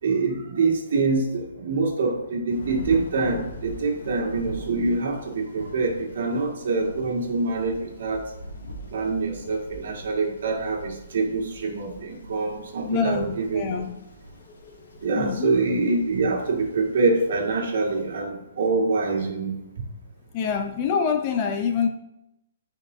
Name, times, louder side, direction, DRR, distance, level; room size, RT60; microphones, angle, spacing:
voice 1, 0.0-8.2 8.9-13.8 15.0-19.6, right 3 dB, 55° right, 1 dB, 1.8 m, -25 dB
Thunder / Rain, 2.5-18.1, right 1 dB, 70° left, 2.2 m, -42 dB
voice 2, 12.9-14.0 14.6-15.5 20.3-21.9, left 6 dB, 25° left, 6 dB, 0.5 m, -26 dB
12.0 x 5.3 x 2.7 m, 0.86 s
hypercardioid pair, 170°, 0 cm